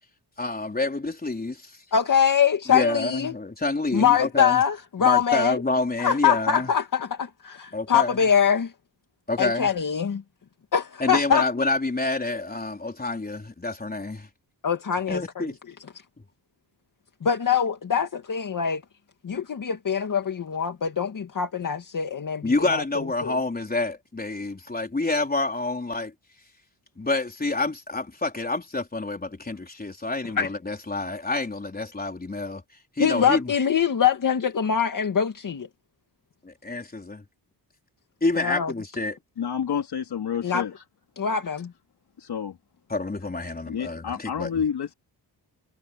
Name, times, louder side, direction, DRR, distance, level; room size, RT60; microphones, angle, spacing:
voice 1, 0.4-1.8 2.7-4.6 5.0-6.7 7.7-8.2 9.3-9.7 11.0-14.3 15.1-15.5 22.4-26.1 27.0-32.6 33.0-33.5 36.4-37.2 38.2-39.2 42.9-44.5, left 2 dB, 20° left, 4.3 m, -28 dB
voice 2, 1.9-3.3 3.9-5.6 6.0-8.7 9.4-10.2 10.7-11.4 14.6-15.5 17.2-18.8 19.2-22.8 23.2-23.4 30.4-30.5 33.0-35.7 38.4-38.7 40.4-40.6 41.2-41.7, left 7 dB, 50° left, 2.1 m, -23 dB
voice 3, 39.4-40.7 42.2-42.6 43.7-44.9, left 7 dB, 65° left, 3.5 m, -29 dB
wide cardioid pair, 125°, 42 cm